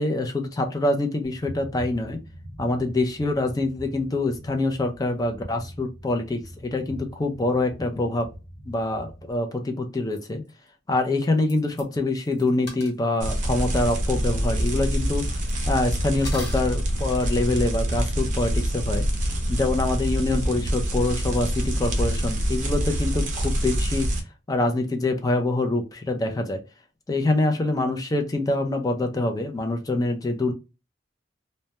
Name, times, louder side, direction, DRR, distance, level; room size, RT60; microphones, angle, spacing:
voice 1, 0.0-2.2 2.6-8.3 8.7-10.4 10.9-15.4 15.6-19.1 19.5-24.1 24.5-26.6 27.1-30.5, left 2 dB, 20° left, 4 dB, 0.4 m, -25 dB
sound 1, 1.2-9.3, equal, 35° left, 0.9 m, -43 dB
sound 2, 10.1-10.2 10.5-10.6 11.2-11.3 11.5-11.8 12.2-13.0 14.1-14.2 14.4-14.7 15.3-15.8 16.2-16.6, left 2 dB, 55° left, 0.9 m, -40 dB
sound 3, 13.2-24.2, equal, 40° right, 0.5 m, -25 dB
2.1 x 2.1 x 2.7 m, 0.29 s
head